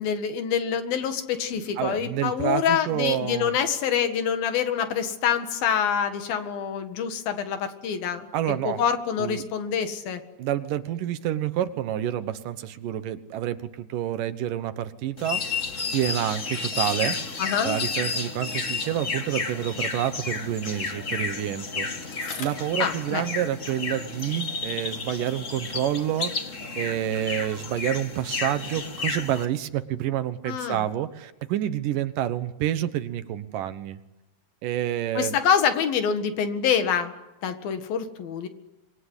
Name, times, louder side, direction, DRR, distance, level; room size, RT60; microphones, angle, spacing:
voice 1, 0.0-8.3 8.7-10.2 17.4-17.8 22.8-23.3 30.5-30.8 35.2-37.1 37.4-38.5, left 8 dB, 85° left, 8 dB, 3.7 m, -26 dB
voice 2, 1.8-3.6 8.3-8.8 9.2-9.4 10.4-15.4 15.9-17.2 17.6-22.1 22.4-34.0 34.6-35.4, right 11 dB, 70° right, 12 dB, 2.6 m, -28 dB
sound 1, 15.2-29.4, left 4 dB, 40° left, 1.1 m, -32 dB
sound 2, 16.0-27.3, equal, 5° right, 4.6 m, -48 dB
Bicycle, 21.6-23.9 24.2-26.6 27.3-27.4, left 4 dB, 60° left, 5.8 m, -46 dB
26.0 x 22.5 x 9.8 m, 0.97 s
omnidirectional pair, 4.1 m